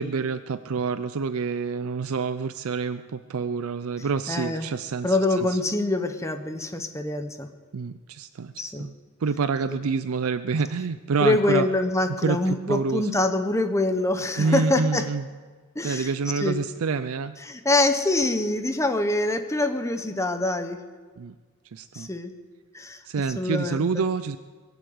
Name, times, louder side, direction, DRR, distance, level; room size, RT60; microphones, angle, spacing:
voice 1, 0.0-5.6 7.7-8.9 9.2-11.7 12.2-13.1 14.4-15.3 15.8-17.3 21.2-21.3 21.7-22.1 23.1-24.4, right 5 dB, 70° right, 13 dB, 0.5 m, -27 dB
voice 2, 4.3-4.7 5.0-7.5 8.6-8.9 11.2-15.0 15.7-16.1 16.4-16.6 17.4-20.8 21.9-22.3 22.7-23.0 23.4-24.0, left 2 dB, 15° left, 7 dB, 1.0 m, -25 dB
22.0 x 8.1 x 7.9 m, 1.5 s
head